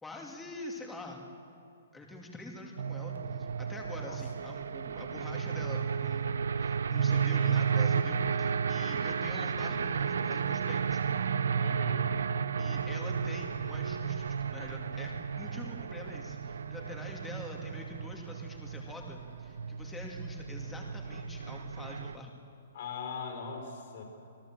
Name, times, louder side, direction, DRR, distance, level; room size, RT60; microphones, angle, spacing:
voice 1, 0.0-1.2 1.9-11.0 12.6-22.3, left 2 dB, 10° left, 0 dB, 2.5 m, -45 dB
sound 1, 2.8-22.2, right 6 dB, 85° right, 0.8 m, -33 dB
voice 2, 7.1-7.6 11.6-12.0 22.7-24.0, left 4 dB, 55° left, 2 dB, 5.3 m, -40 dB
26.0 x 18.0 x 7.6 m, 2.6 s
hypercardioid pair, 155°, 0 cm